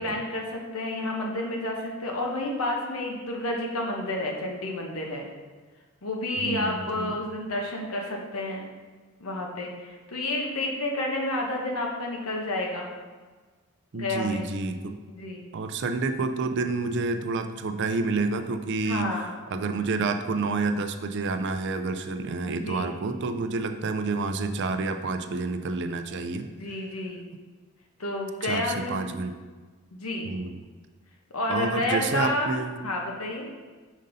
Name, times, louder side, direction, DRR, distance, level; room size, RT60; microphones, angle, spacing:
voice 1, 0.0-5.2 6.0-8.6 9.2-12.9 13.9-14.5 15.1-15.4 18.8-19.3 22.5-22.9 26.6-27.2 28.0-29.0 29.9-30.3 31.3-32.6 32.8-33.5, left 1 dB, 75° left, 0 dB, 1.1 m, -30 dB
voice 2, 6.4-7.1 13.9-14.9 15.5-19.1 19.5-26.5 28.4-29.3 30.2-30.6 31.5-32.8, right 3 dB, 55° right, 8 dB, 0.4 m, -29 dB
5.3 x 5.2 x 4.0 m, 1.4 s
head